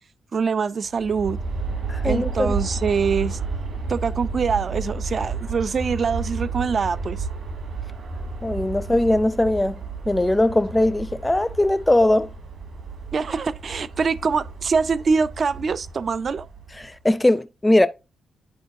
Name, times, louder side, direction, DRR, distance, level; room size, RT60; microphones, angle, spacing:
voice 1, 0.3-1.4 2.0-3.4 3.9-7.3 13.1-16.5, right 5 dB, 50° right, 0.4 m, -24 dB
Aircraft, 0.9-16.9, right 4 dB, 65° right, 2.0 m, -32 dB
voice 2, 1.9-2.5 8.4-9.8 10.1-12.3 16.8-17.9, left 1 dB, 15° left, 0.5 m, -20 dB
10.5 x 4.5 x 2.6 m
cardioid pair, 85°, 0 cm